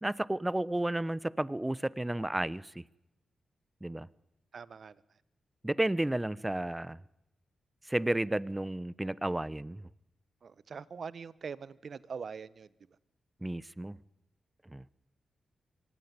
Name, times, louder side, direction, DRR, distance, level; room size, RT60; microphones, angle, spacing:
voice 1, 0.0-2.8 3.8-4.1 5.6-7.0 7.9-9.9 13.4-14.0 14.7-14.8, right 1 dB, 15° right, 1.0 m, -32 dB
voice 2, 4.5-5.0 10.4-12.7, right 6 dB, 65° right, 1.1 m, -43 dB
24.5 x 19.5 x 9.9 m
supercardioid pair, 50°, 0 cm